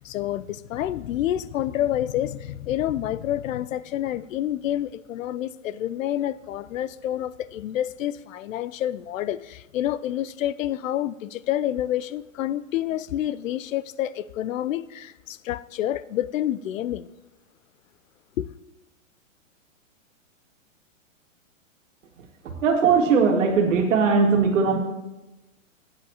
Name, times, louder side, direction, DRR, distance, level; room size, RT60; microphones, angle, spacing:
voice 1, 0.0-17.1 18.4-18.5, left 12 dB, 75° left, 0.5 m, -28 dB
voice 2, 22.4-24.8, right 5 dB, 70° right, 1.9 m, -19 dB
13.0 x 8.9 x 2.9 m
hypercardioid pair, 155°, 40 cm